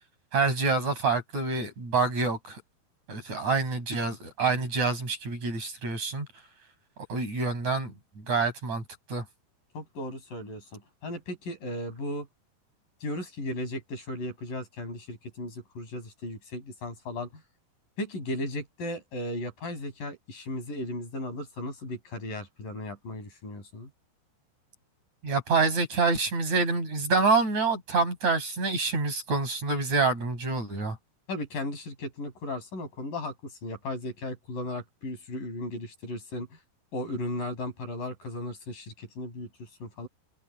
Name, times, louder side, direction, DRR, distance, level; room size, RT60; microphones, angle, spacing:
voice 1, 0.3-2.6 3.1-6.3 7.1-8.8 9.1-9.2 25.2-31.0, right 4 dB, 45° right, 7.6 m, -27 dB
voice 2, 9.7-12.3 13.0-17.3 18.0-23.9 31.3-36.6 36.9-40.1, left 1 dB, 55° left, 9.0 m, -36 dB
omnidirectional pair, 4.7 m